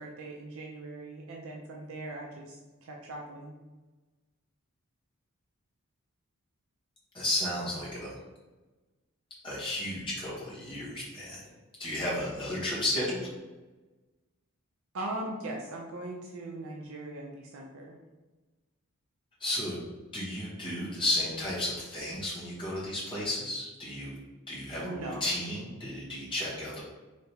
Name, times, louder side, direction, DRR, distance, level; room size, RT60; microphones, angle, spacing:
voice 1, 0.0-3.5 14.9-18.0 24.7-25.3, right 2 dB, 70° right, -1 dB, 0.4 m, -40 dB
voice 2, 7.1-8.1 9.4-11.4 11.8-13.2 19.4-19.8 20.1-24.1 24.5-26.8, left 1 dB, 20° left, -7 dB, 1.0 m, -33 dB
3.3 x 2.7 x 2.8 m, 1.2 s
head